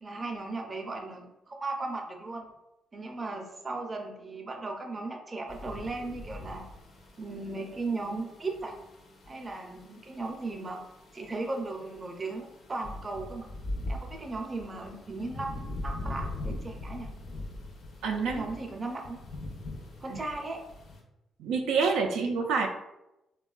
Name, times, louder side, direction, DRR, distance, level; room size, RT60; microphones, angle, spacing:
voice 1, 0.0-2.4 2.9-6.6 7.2-8.7 9.3-10.8 11.1-13.5 13.9-17.1 18.2-19.2 20.0-20.6, right 3 dB, 30° right, 2 dB, 0.5 m, -36 dB
sound 1, 5.5-21.0, left 1 dB, 60° left, 0.5 m, -42 dB
voice 2, 18.0-18.4 20.1-20.2 21.4-22.7, right 5 dB, 85° right, 2 dB, 0.3 m, -27 dB
3.5 x 2.2 x 2.3 m, 0.91 s
cardioid pair, 90°, 0 cm